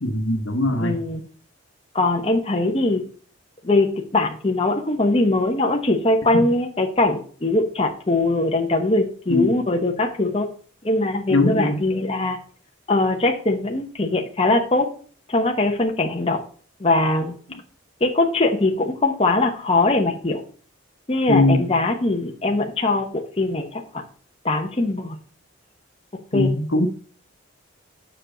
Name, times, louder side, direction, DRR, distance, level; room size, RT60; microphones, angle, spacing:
voice 1, 0.0-1.0 6.3-6.5 9.3-9.5 11.3-11.8 21.3-21.6 26.3-26.9, left 2 dB, 65° left, 1.2 m, -20 dB
voice 2, 0.8-1.2 1.9-3.0 3.6-10.5 10.8-12.4 12.9-14.9 15.3-16.4 16.8-17.4 18.0-20.4 21.1-24.0 24.4-25.2 26.3-26.5, left 2 dB, 25° left, 0.9 m, -21 dB
7.2 x 6.4 x 3.9 m
head